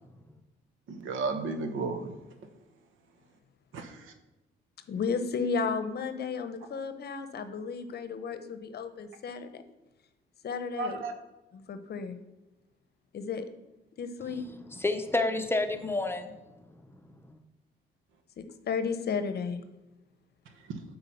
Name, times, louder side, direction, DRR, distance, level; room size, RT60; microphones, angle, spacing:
voice 1, 0.9-2.1 3.7-4.1 10.8-11.1 20.7-20.8, right 4 dB, 80° right, 7 dB, 1.0 m, -33 dB
voice 2, 4.9-9.6 10.4-11.0 11.7-12.2 13.1-13.5 14.0-14.4 18.4-19.6, left 5 dB, 55° left, 9 dB, 0.8 m, -33 dB
voice 3, 14.2-17.4, left 2 dB, 10° left, 7 dB, 0.8 m, -32 dB
8.3 x 4.0 x 5.7 m, 1.0 s
cardioid pair, 90°, 20 cm